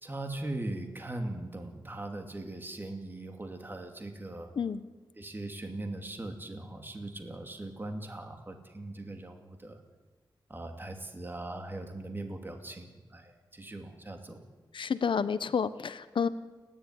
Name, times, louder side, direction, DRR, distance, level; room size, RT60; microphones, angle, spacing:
voice 1, 0.0-4.5 5.2-9.8 10.5-14.4, right 2 dB, 25° right, 5 dB, 2.6 m, -40 dB
voice 2, 14.7-16.3, left 6 dB, 80° left, 13 dB, 1.0 m, -30 dB
29.5 x 11.0 x 9.9 m, 1.3 s
wide cardioid pair, 120°, 8 cm